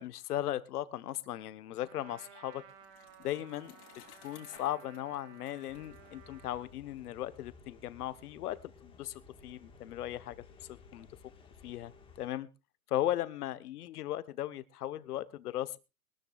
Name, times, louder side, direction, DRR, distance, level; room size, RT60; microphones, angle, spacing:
voice 1, 0.0-2.6 3.2-3.7 4.2-10.4 10.7-11.1 11.6-11.9 12.2-12.5 12.9-15.8, left 13 dB, 70° left, 14 dB, 1.2 m, -37 dB
Trumpet, 1.8-6.8, right 9 dB, 45° right, 2.6 m, -56 dB
Bicycle, 2.2-7.0, left 11 dB, 50° left, 3.1 m, -59 dB
sound 1, 5.7-12.3, left 4 dB, 10° left, 1.6 m, -57 dB
22.0 x 13.5 x 2.4 m, 0.28 s
hypercardioid pair, 150°, 47 cm